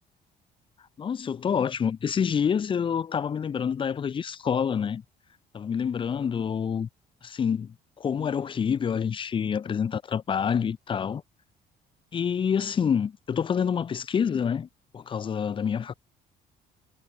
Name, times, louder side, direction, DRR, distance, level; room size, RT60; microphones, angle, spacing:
voice 1, 1.0-5.0 5.5-6.9 7.2-11.2 12.1-14.7 14.9-15.9, left 7 dB, 30° left, 0.6 m, -27 dB
cardioid pair, 110°, 17 cm